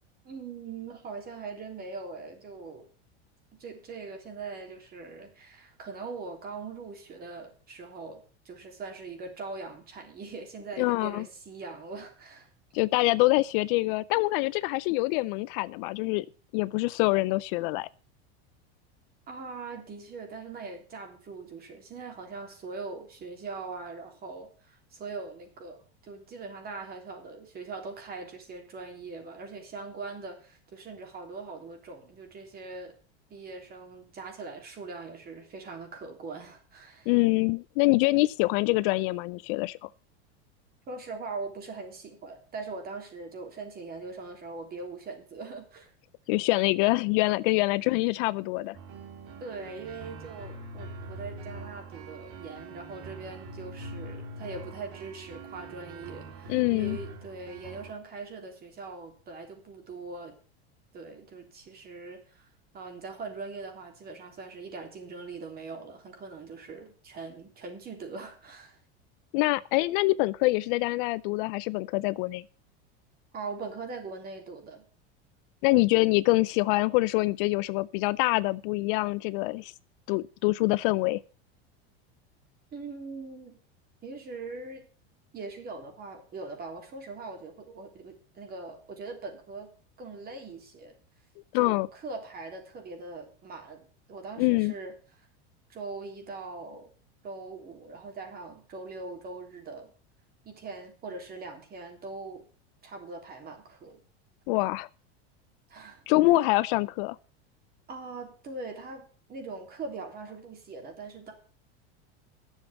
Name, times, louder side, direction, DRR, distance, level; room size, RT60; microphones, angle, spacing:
voice 1, 0.2-2.9 3.6-12.5 19.3-32.9 33.3-37.1 40.9-45.9 49.4-60.3 60.9-62.5 62.7-68.8 73.3-74.8 82.7-83.6 84.0-84.8 85.3-89.7 90.0-90.9 91.5-95.3 95.7-96.9 97.2-99.9 100.4-102.4 102.8-104.0 105.7-106.0 106.4-106.5 107.9-111.3, right 4 dB, 30° right, 3.5 m, -41 dB
voice 2, 10.8-11.2 12.7-16.3 16.5-17.9 37.1-39.9 46.3-48.8 56.5-57.0 69.3-72.4 75.6-79.7 80.1-81.2 91.5-91.9 94.4-94.7 104.5-104.9 106.1-107.2, left 21 dB, 55° left, 0.5 m, -25 dB
sound 1, 48.7-57.9, right 2 dB, 50° right, 2.8 m, -43 dB
10.5 x 7.3 x 8.1 m
supercardioid pair, 140°, 33 cm